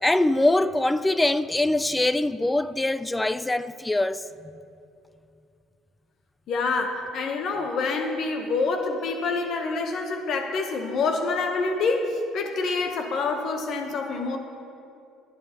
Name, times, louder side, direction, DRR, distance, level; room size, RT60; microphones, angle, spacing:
voice 1, 0.0-4.2, left 2 dB, 10° left, 0.4 m, -23 dB
voice 2, 6.5-14.4, left 3 dB, 55° left, 0.9 m, -27 dB
22.0 x 8.3 x 2.9 m
hypercardioid pair, 60°, 0 cm